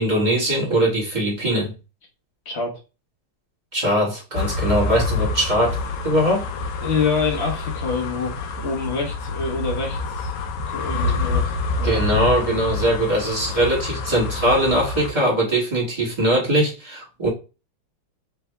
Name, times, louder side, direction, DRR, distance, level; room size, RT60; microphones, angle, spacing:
voice 1, 0.0-1.7 3.7-6.5 11.8-17.3, right 1 dB, 20° right, -4 dB, 1.6 m, -21 dB
sound 1, 4.4-15.1, left 3 dB, 75° left, 1.3 m, -27 dB
voice 2, 6.8-10.3 10.7-12.0, left 5 dB, 40° left, 1 dB, 1.0 m, -26 dB
3.5 x 3.3 x 3.2 m, 0.30 s
omnidirectional pair, 2.4 m